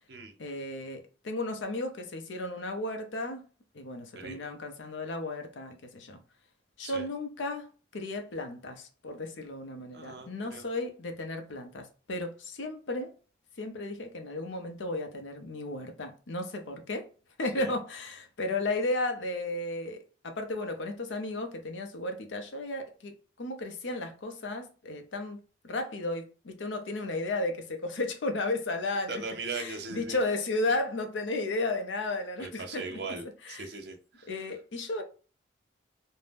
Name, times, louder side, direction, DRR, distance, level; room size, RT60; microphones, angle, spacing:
voice 1, 0.4-3.4 3.7-6.2 6.8-13.1 13.6-17.1 17.4-29.2 29.5-33.0 33.5-33.7 34.3-35.0, left 2 dB, 80° left, 0.6 m, -34 dB
voice 2, 4.2-4.5 6.8-7.1 9.9-10.6 17.5-17.7 29.1-30.2 32.4-34.3, right 4 dB, 60° right, 0.6 m, -39 dB
2.5 x 2.0 x 3.3 m
head